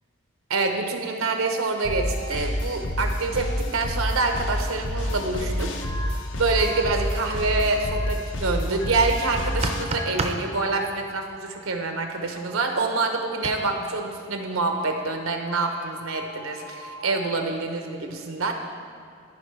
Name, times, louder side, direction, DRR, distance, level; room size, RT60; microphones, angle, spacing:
voice 1, 0.5-18.5, right 3 dB, 85° right, 4 dB, 0.9 m, -26 dB
sound 1, 1.4-3.6 3.9-4.8 5.1-8.4 8.7-14.0 14.6-14.9 15.3-17.3, equal, 20° left, 0.7 m, -42 dB
sound 2, 1.8-9.8, equal, 60° left, 0.7 m, -29 dB
sound 3, 9.4-10.4 13.4-13.5, right 3 dB, 30° right, 0.5 m, -28 dB
13.5 x 5.0 x 3.2 m, 2.5 s
head